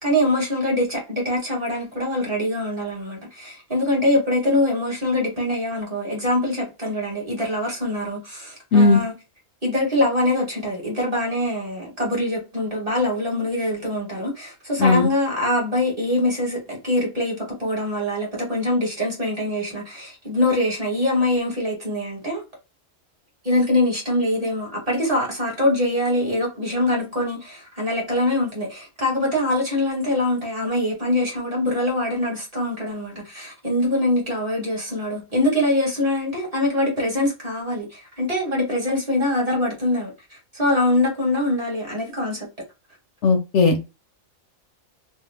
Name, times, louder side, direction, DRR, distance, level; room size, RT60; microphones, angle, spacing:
voice 1, 0.0-9.1 9.6-22.4 23.4-40.1 40.5-42.5, left 1 dB, 30° right, 1.1 m, -23 dB
voice 2, 8.7-9.0 14.8-15.1 43.2-43.8, left 3 dB, 70° left, 0.8 m, -16 dB
2.6 x 2.1 x 3.2 m
omnidirectional pair, 1.3 m